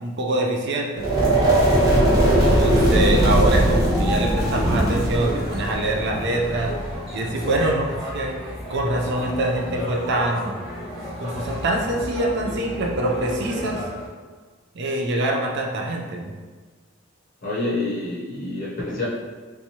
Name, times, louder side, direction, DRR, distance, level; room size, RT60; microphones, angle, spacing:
voice 1, 0.0-1.2 2.3-6.7 7.1-8.4 8.7-10.6 11.2-13.8 14.7-16.3, right 2 dB, 55° right, 1 dB, 0.4 m, -24 dB
sound 1, 1.0-6.9, right 1 dB, 15° right, 1.0 m, -19 dB
sound 2, 2.4-14.1, equal, ahead, 1.2 m, -32 dB
voice 2, 17.4-19.1, left 2 dB, 40° left, -7 dB, 0.6 m, -27 dB
3.4 x 3.0 x 2.8 m, 1.4 s
head